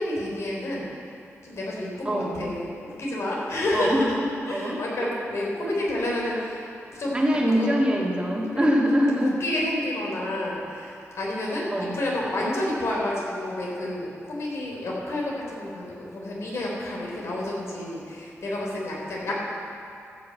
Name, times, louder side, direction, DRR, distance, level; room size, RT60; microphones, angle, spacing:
voice 1, 0.0-4.1 4.5-7.2 7.5-7.7 9.2-19.3, left 1 dB, 65° left, -3 dB, 4.0 m, -30 dB
voice 2, 2.0-2.4 3.7-5.1 5.7-6.4 6.9-9.3 10.2-10.3 11.7-12.0, equal, 20° right, -2 dB, 2.3 m, -25 dB
14.0 x 6.7 x 8.5 m, 2.5 s
wide cardioid pair, 100°, 5 cm